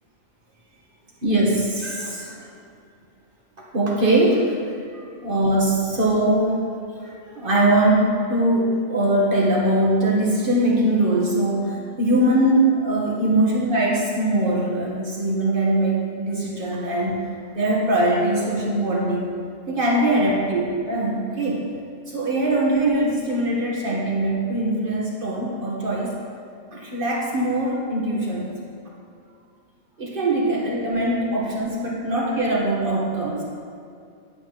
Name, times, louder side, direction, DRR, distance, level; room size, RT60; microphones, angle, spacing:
voice 1, 1.2-2.5 3.7-4.9 5.2-17.2 17.6-19.3 19.7-21.6 22.1-26.1 26.7-28.5 30.0-33.4, right 1 dB, 45° right, -4 dB, 1.8 m, -22 dB
10.5 x 8.6 x 3.2 m, 2.4 s
omnidirectional pair, 1.3 m